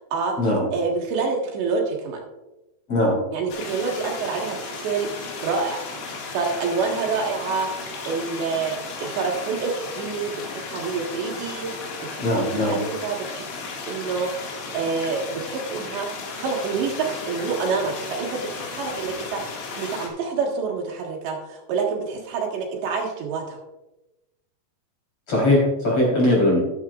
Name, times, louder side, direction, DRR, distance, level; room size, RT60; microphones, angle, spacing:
voice 1, 0.7-2.2 3.3-5.1 5.4-5.8 6.3-11.7 12.1-13.5 13.9-16.1 16.4-19.4 19.8-23.6, right 5 dB, 75° right, -1 dB, 3.8 m, -27 dB
sound 1, 3.5-20.1, left 4 dB, 85° left, 4.2 m, -35 dB
voice 2, 12.2-12.8 25.3-26.6, left 1 dB, 35° left, -4 dB, 4.4 m, -20 dB
13.0 x 11.0 x 2.5 m, 1.0 s
omnidirectional pair, 5.2 m